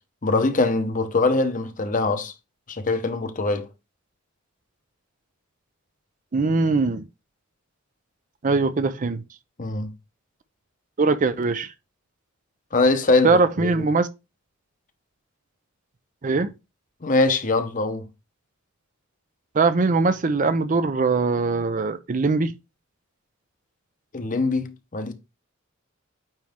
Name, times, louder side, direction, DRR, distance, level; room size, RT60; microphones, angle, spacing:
voice 1, 0.2-2.3 2.7-3.7 9.6-9.9 12.7-13.8 17.0-18.1 24.1-25.1, left 3 dB, 40° left, 0.8 m, -22 dB
voice 2, 6.3-7.0 8.4-9.2 11.0-11.7 13.2-14.1 16.2-16.5 19.5-22.5, right 4 dB, 40° right, 0.5 m, -21 dB
8.9 x 3.1 x 3.6 m
head